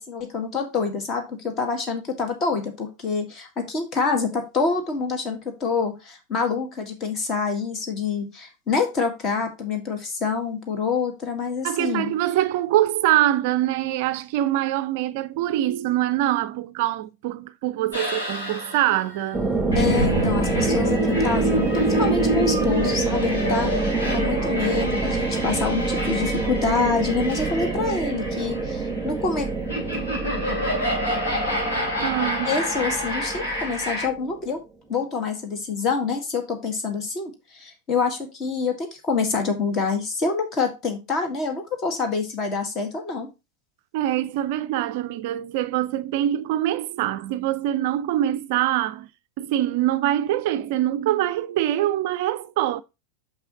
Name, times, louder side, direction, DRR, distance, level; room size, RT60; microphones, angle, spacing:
voice 1, 0.0-12.1 19.7-29.5 32.5-34.6 34.9-43.3, left 4 dB, 30° left, 1.9 m, -26 dB
voice 2, 11.6-19.5 32.0-32.5 43.9-49.1 49.4-52.8, right 13 dB, 50° right, 0.4 m, -24 dB
sound 1, 17.9-34.1, left 1 dB, 75° left, 4.1 m, -28 dB
sound 2, 19.3-34.4, right 3 dB, 15° right, 1.2 m, -26 dB
5.9 x 5.5 x 4.1 m
figure-of-eight pair, 90°, 0 cm